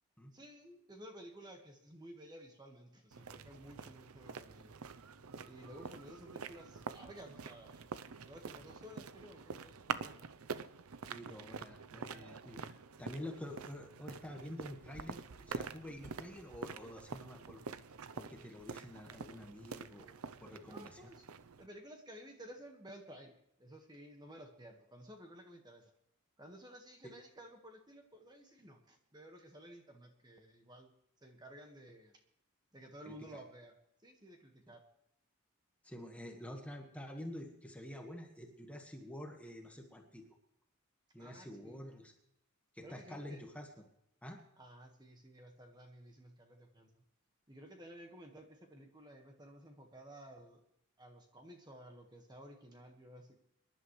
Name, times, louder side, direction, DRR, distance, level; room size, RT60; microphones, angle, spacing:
voice 1, 0.3-4.7 5.4-7.9 8.2-10.2 20.6-21.3 21.6-25.9 26.4-30.9 31.2-32.1 32.7-33.8 34.0-34.8 41.2-41.9 42.8-43.4 44.6-47.0 47.5-50.6 51.0-53.4, equal, 20° right, 4 dB, 1.5 m, -54 dB
sound 1, 3.1-21.7, right 5 dB, 75° right, 0.7 m, -47 dB
voice 2, 11.1-17.6 18.1-21.1 27.0-27.1 33.0-33.3 35.8-40.2 41.1-42.1 42.7-43.7 44.2-44.4, left 1 dB, 5° left, 2 dB, 1.5 m, -48 dB
25.5 x 11.5 x 3.2 m, 0.78 s
head